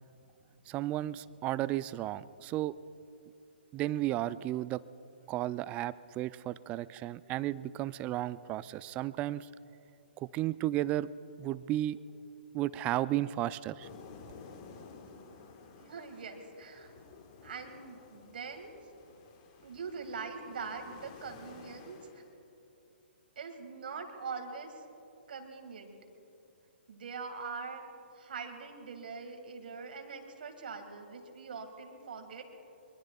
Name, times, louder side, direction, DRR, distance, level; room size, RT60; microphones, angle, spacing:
voice 1, 0.7-2.7 3.7-4.8 5.3-9.5 10.2-11.1 11.4-12.0 12.5-13.9, right 14 dB, 20° right, 18 dB, 0.3 m, -33 dB
sound 1, 13.8-22.3, left 5 dB, 35° left, 1.5 m, -53 dB
voice 2, 15.8-16.9 17.4-18.7 19.6-22.2 23.4-24.8 25.3-26.0 26.9-27.8 28.1-32.4, right 5 dB, 60° right, 5 dB, 1.9 m, -43 dB
23.5 x 23.5 x 2.3 m, 2.8 s
figure-of-eight pair, 125°, 6 cm